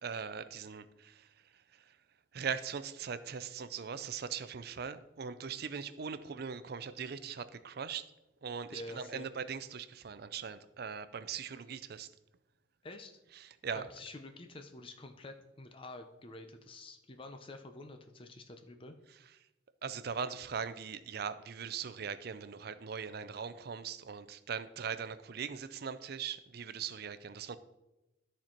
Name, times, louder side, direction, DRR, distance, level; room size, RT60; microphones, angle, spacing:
voice 1, 0.0-2.0 2.3-8.1 8.4-12.1 13.3-13.8 19.8-27.6, right 6 dB, 55° right, 14 dB, 0.5 m, -40 dB
voice 2, 8.7-9.3 12.8-13.2 13.7-18.9, left 2 dB, 25° left, 6 dB, 0.6 m, -48 dB
13.0 x 4.4 x 4.4 m, 0.98 s
head